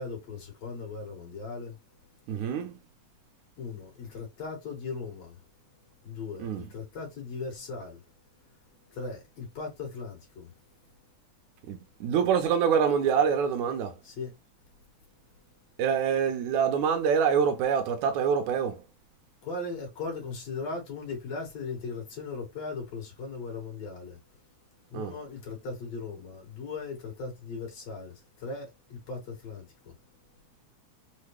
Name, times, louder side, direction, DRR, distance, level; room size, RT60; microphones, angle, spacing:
voice 1, 0.0-1.8 3.6-5.4 6.0-8.0 8.9-10.5 14.0-14.4 19.4-24.2 24.9-29.9, left 4 dB, 65° left, 2.8 m, -38 dB
voice 2, 2.3-2.7 6.4-6.7 11.7-14.0 15.8-18.8 24.9-25.1, right 7 dB, 80° right, 2.2 m, -25 dB
5.7 x 2.2 x 3.2 m
omnidirectional pair, 3.4 m